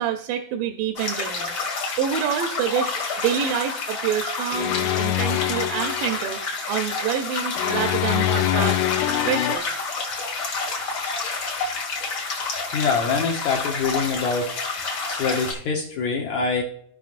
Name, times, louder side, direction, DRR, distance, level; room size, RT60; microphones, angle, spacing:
voice 1, 0.0-1.5 2.0-6.4 6.7-8.8 9.2-9.7, right 9 dB, 80° right, 5 dB, 2.1 m, -27 dB
sound 1, 1.0-15.5, left 4 dB, 45° left, 1.9 m, -29 dB
sound 2, 4.5-6.2 7.6-9.6, left 15 dB, 85° left, 1.9 m, -24 dB
voice 2, 12.7-14.6 15.1-16.6, left 5 dB, 70° left, 0 dB, 1.9 m, -24 dB
15.5 x 5.5 x 2.5 m, 0.65 s
omnidirectional pair, 4.2 m